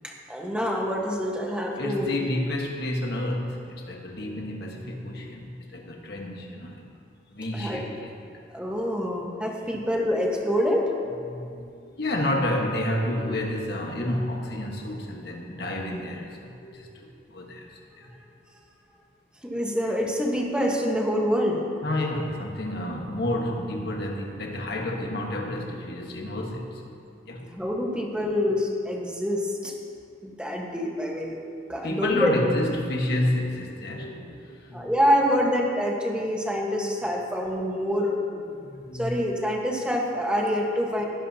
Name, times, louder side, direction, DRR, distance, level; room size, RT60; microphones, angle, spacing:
voice 1, 0.0-2.1 7.5-7.8 8.5-10.9 19.4-21.6 27.6-29.7 30.2-31.4 31.7-32.3 34.7-38.2 38.9-41.0, equal, 5° right, -1 dB, 1.3 m, -26 dB
voice 2, 1.7-6.8 7.3-8.1 9.7-9.8 11.3-17.7 18.0-18.1 21.8-26.9 27.2-27.8 31.8-34.9 37.9-39.2 41.0-41.1, left 1 dB, 60° left, 0 dB, 1.5 m, -30 dB
17.5 x 11.5 x 2.9 m, 2.4 s
head